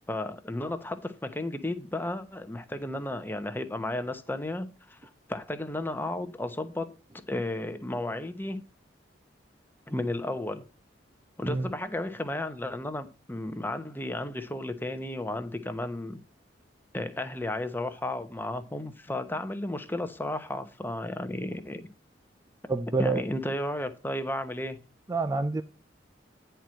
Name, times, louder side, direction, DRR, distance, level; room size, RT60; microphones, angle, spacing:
voice 1, 0.1-6.9 7.3-8.6 9.9-10.6 11.4-16.2 16.9-21.8 23.0-24.8, left 1 dB, 10° left, 0.9 m, -33 dB
voice 2, 22.7-23.2 25.1-25.6, right 3 dB, 20° right, 0.4 m, -27 dB
10.0 x 4.5 x 6.3 m
head